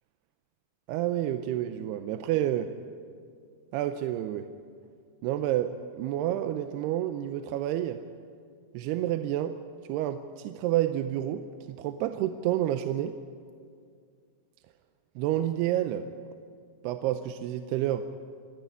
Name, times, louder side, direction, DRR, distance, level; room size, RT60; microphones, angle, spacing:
voice 1, 0.9-2.7 3.7-4.5 5.2-8.0 8.7-9.6 9.9-13.2 15.2-16.1 16.8-18.1, right 12 dB, 85° right, 9 dB, 2.6 m, -29 dB
26.5 x 10.5 x 9.4 m, 2.2 s
omnidirectional pair, 4.7 m